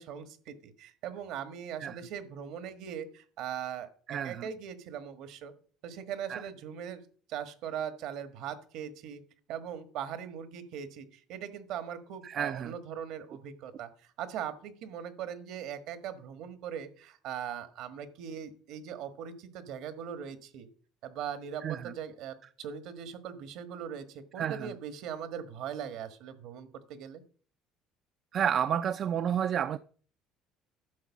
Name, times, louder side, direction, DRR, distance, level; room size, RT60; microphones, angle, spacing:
voice 1, 0.0-5.5 5.8-7.0 7.3-9.2 9.5-20.7 21.0-27.2, right 8 dB, 70° right, 1.4 m, -40 dB
voice 2, 4.1-4.5 6.3-6.4 12.2-12.7 21.6-21.9 24.4-24.8 28.3-29.8, right 9 dB, 50° right, 0.4 m, -31 dB
11.5 x 4.5 x 7.3 m
cardioid pair, 110°, 0 cm